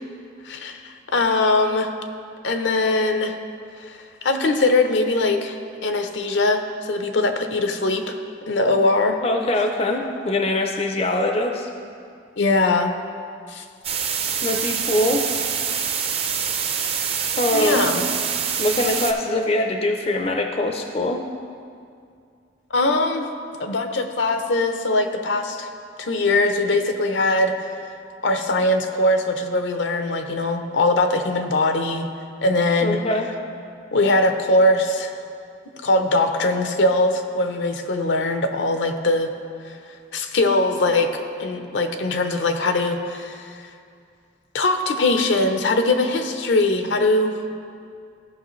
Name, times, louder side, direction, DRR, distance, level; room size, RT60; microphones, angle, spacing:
voice 1, 0.4-1.9 2.4-3.4 3.8-5.6 5.8-8.2 8.5-9.2 12.4-12.9 13.5-13.6 17.5-18.1 22.7-23.3 23.6-25.7 26.0-27.9 28.2-32.1 32.4-33.0 33.9-35.2 35.8-39.3 39.7-39.8 40.1-41.1 41.4-43.6 44.5-47.4, left 2 dB, 75° left, 6 dB, 0.6 m, -21 dB
voice 2, 9.2-11.7 14.4-15.2 17.4-17.9 18.6-21.2 32.8-33.3, left 1 dB, 30° left, 4 dB, 0.4 m, -23 dB
sound 1, 13.8-19.1, right 7 dB, 30° right, 0.5 m, -25 dB
14.5 x 5.6 x 3.1 m, 2.4 s
head